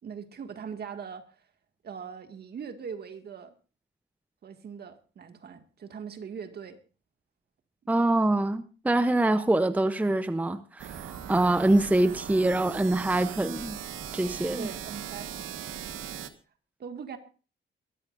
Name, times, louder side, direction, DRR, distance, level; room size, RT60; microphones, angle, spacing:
voice 1, 0.0-1.5 1.8-3.5 4.4-6.8 14.6-15.5 16.8-17.2, right 6 dB, 55° right, 2.0 m, -41 dB
voice 2, 7.9-13.8 14.1-14.7, right 2 dB, 10° right, 0.7 m, -25 dB
sound 1, 10.8-16.3, right 9 dB, 80° right, 1.5 m, -39 dB
22.5 x 14.0 x 2.6 m
cardioid pair, 125°, 20 cm